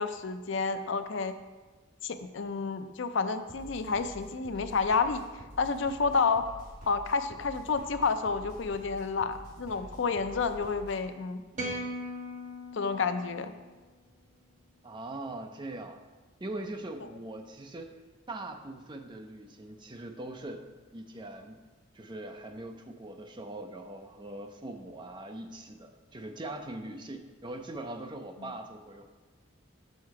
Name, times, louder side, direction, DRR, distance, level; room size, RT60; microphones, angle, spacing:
voice 1, 0.0-1.3 2.0-5.2 5.6-6.4 6.9-11.4 12.7-13.5, left 4 dB, 65° left, 9 dB, 0.5 m, -30 dB
sound 1, 3.5-11.0, equal, 80° right, 2.8 m, -48 dB
sound 2, 11.5-13.9, equal, 40° right, 1.1 m, -39 dB
voice 2, 14.8-16.0 16.4-18.0 18.3-21.6 21.9-29.1, right 2 dB, 25° right, 5 dB, 0.5 m, -41 dB
6.5 x 6.5 x 4.7 m, 1.3 s
head